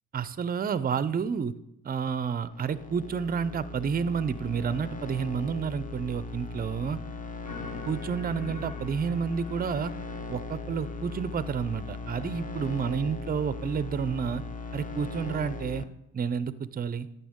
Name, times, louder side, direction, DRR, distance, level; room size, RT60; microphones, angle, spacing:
voice 1, 0.1-1.5 1.8-7.0 7.9-9.9 10.3-14.4 14.7-15.9 16.1-17.1, right 6 dB, 25° right, 15 dB, 0.4 m, -30 dB
sound 1, 2.4-15.8, left 3 dB, 25° left, 0.5 m, -39 dB
sound 2, 7.4-12.9, left 4 dB, 65° left, 1.6 m, -47 dB
11.5 x 6.7 x 3.6 m, 0.85 s
cardioid pair, 105°, 36 cm